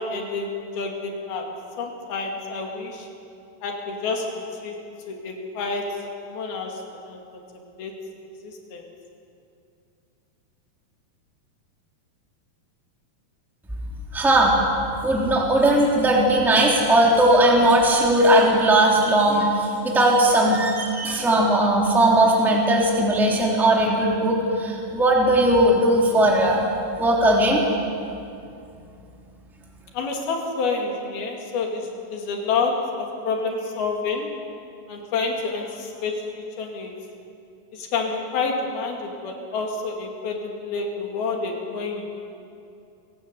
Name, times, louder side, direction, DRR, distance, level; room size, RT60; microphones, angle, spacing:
voice 1, 0.0-1.5 1.8-3.1 3.6-4.7 5.1-6.0 6.3-6.8 7.1-7.4 7.8-8.0 8.4-8.8 29.9-34.4 34.9-36.9 37.8-42.3, left 4 dB, 85° left, 1 dB, 4.3 m, -28 dB
voice 2, 14.1-14.5 15.0-26.6 27.0-27.6, right 1 dB, ahead, -3 dB, 2.8 m, -18 dB
26.0 x 16.5 x 8.2 m, 2.6 s
omnidirectional pair, 4.2 m